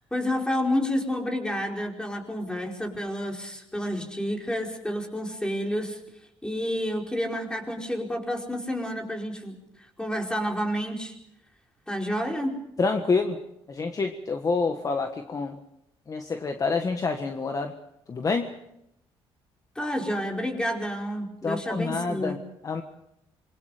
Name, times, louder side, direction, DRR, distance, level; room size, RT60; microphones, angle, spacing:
voice 1, 0.1-6.0 6.4-9.5 10.0-11.1 11.9-12.6 19.7-22.4, equal, 10° left, 1 dB, 4.8 m, -29 dB
voice 2, 12.8-13.4 13.7-15.6 16.1-17.7 18.1-18.5 21.4-22.4 22.6-22.8, left 4 dB, 35° left, 5 dB, 1.5 m, -27 dB
26.5 x 23.0 x 5.1 m, 0.79 s
cardioid pair, 95°, 10 cm